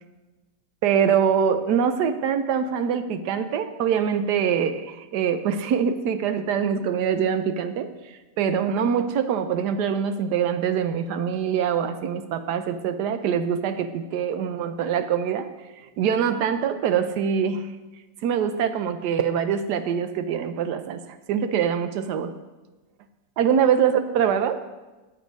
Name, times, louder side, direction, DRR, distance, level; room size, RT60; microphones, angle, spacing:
voice 1, 0.8-15.5 16.0-17.7 18.2-21.0 21.3-22.3 23.4-24.6, right 7 dB, 70° right, 10 dB, 1.1 m, -24 dB
9.8 x 7.9 x 5.2 m, 1.2 s
omnidirectional pair, 2.1 m